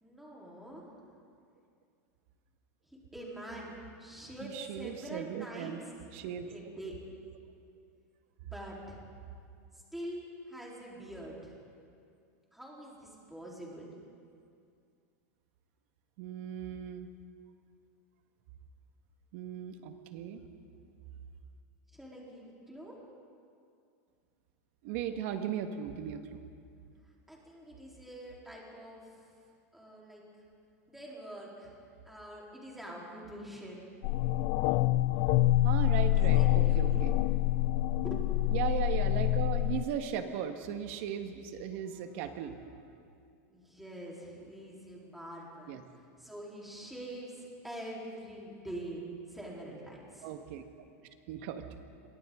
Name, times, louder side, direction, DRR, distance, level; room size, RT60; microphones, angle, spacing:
voice 1, 0.0-0.9 3.1-5.8 6.5-7.0 8.4-9.0 9.9-11.6 12.5-13.9 21.9-22.9 27.3-29.1 29.7-30.2 30.9-31.7 32.1-33.9 36.2-37.1 38.0-38.2 43.5-45.7 46.2-50.3, right 1 dB, ahead, -4 dB, 4.1 m, -45 dB
voice 2, 4.4-5.8 6.1-6.5 16.2-17.1 19.3-20.4 24.8-26.4 35.6-37.1 38.5-42.6 45.7-45.8 50.2-50.6 51.3-51.6, right 9 dB, 55° right, 7 dB, 1.7 m, -37 dB
sound 1, 34.0-39.8, left 15 dB, 45° left, 0.4 m, -26 dB
29.5 x 23.0 x 3.9 m, 2.4 s
supercardioid pair, 155°, 8 cm